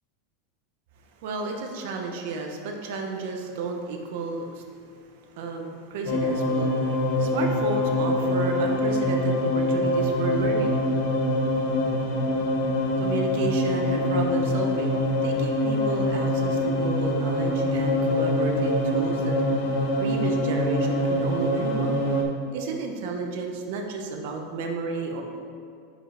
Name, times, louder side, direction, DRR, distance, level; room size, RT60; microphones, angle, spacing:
voice 1, 1.2-10.9 13.0-19.4 20.0-22.0 22.5-25.2, right 4 dB, 60° right, 3 dB, 0.8 m, -32 dB
sound 1, 6.1-22.2, left 1 dB, 50° left, 0.7 m, -24 dB
5.2 x 4.9 x 4.3 m, 2.4 s
supercardioid pair, 170°, 0 cm